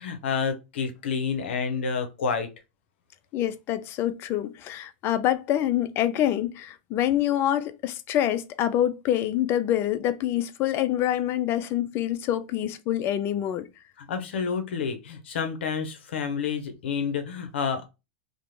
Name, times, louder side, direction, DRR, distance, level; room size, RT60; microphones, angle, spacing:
voice 1, 0.0-2.5 14.0-17.9, left 6 dB, 75° left, 0.6 m, -29 dB
voice 2, 3.3-13.7, left 12 dB, 40° left, 0.4 m, -26 dB
2.5 x 2.1 x 3.0 m
hypercardioid pair, 105°, 6 cm